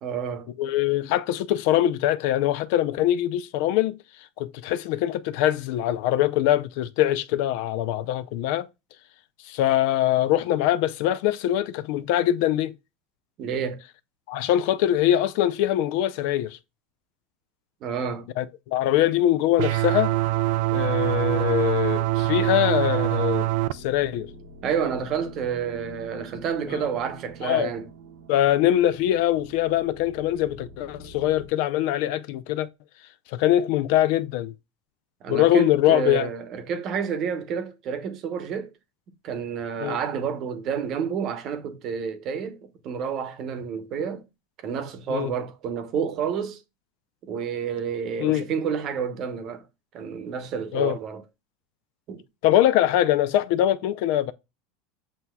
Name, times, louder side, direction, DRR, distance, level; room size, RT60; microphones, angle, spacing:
voice 1, 0.0-0.5 13.4-13.8 17.8-18.3 24.6-27.9 35.2-38.7 39.2-44.2 44.6-46.6 47.2-49.6 49.9-51.2 52.1-52.2, right 7 dB, 45° right, 0.9 m, -29 dB
voice 2, 0.6-4.0 4.4-8.7 9.4-12.7 14.3-16.6 18.4-20.1 20.7-24.3 26.7-26.9 27.4-27.7 28.3-32.7 33.3-34.5 35.3-36.3 39.8-40.0 45.1-45.3 48.2-48.5 50.7-51.0 52.4-54.3, left 12 dB, 65° left, 0.4 m, -23 dB
sound 1, 19.6-23.7, right 17 dB, 70° right, 0.3 m, -24 dB
sound 2, 19.8-31.5, right 2 dB, 90° right, 0.9 m, -46 dB
7.7 x 2.8 x 2.2 m
supercardioid pair, 135°, 0 cm